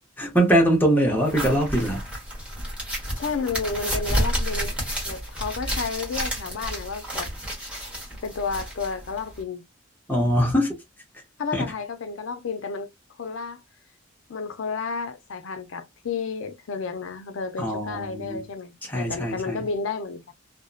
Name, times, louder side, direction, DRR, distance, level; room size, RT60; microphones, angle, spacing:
voice 1, 0.2-2.0 10.1-10.8 11.5-11.7 17.6-18.4 18.8-19.7, equal, 10° left, 0.8 m, -22 dB
sound 1, 1.2-9.4, equal, 5° right, 1.2 m, -30 dB
voice 2, 3.2-4.7 5.0-7.3 8.2-9.6 11.4-12.9 13.2-13.6 14.3-20.3, left 4 dB, 75° left, 0.5 m, -31 dB
2.6 x 2.1 x 2.3 m
head